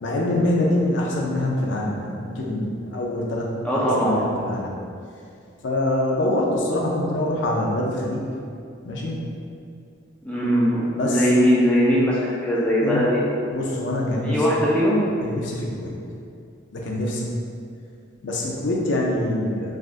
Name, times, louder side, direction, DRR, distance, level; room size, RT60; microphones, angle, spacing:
voice 1, 0.0-3.5 4.0-4.7 5.6-8.3 8.9-9.2 11.0-11.2 12.8-13.0 13.5-14.4 15.2-16.0 16.7-17.3 18.2-19.8, left 1 dB, 65° left, -2 dB, 0.5 m, -25 dB
voice 2, 3.6-4.4 10.2-13.3 14.2-15.0, equal, 5° left, -7 dB, 0.3 m, -20 dB
3.4 x 2.4 x 2.4 m, 2.4 s
head